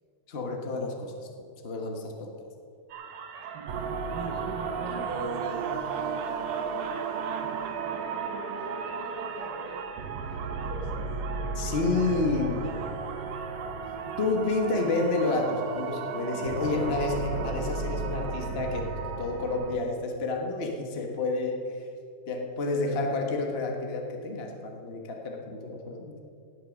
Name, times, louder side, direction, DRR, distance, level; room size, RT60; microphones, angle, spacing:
voice 1, 0.3-1.1 1.6-2.3 11.6-12.6 14.2-18.8 19.2-21.9 22.3-26.2, left 3 dB, 60° left, 2 dB, 0.6 m, -29 dB
sound 1, 2.9-14.9, right 6 dB, 85° right, 1.0 m, -42 dB
sound 2, 3.7-19.8, right 5 dB, 65° right, 1.7 m, -34 dB
voice 2, 4.2-4.6 4.8-7.1 7.4-14.1 16.4-16.7, equal, 15° right, -1 dB, 2.1 m, -45 dB
18.0 x 8.3 x 6.4 m, 2.4 s
omnidirectional pair, 3.5 m